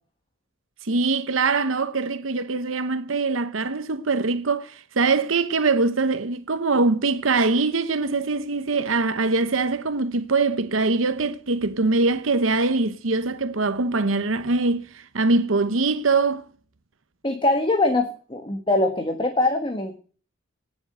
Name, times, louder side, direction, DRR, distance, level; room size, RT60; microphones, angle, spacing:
voice 1, 0.8-16.4, right 3 dB, 80° right, 1.0 m, -23 dB
voice 2, 17.2-20.0, left 2 dB, 25° left, 1.6 m, -23 dB
18.5 x 7.2 x 7.8 m
head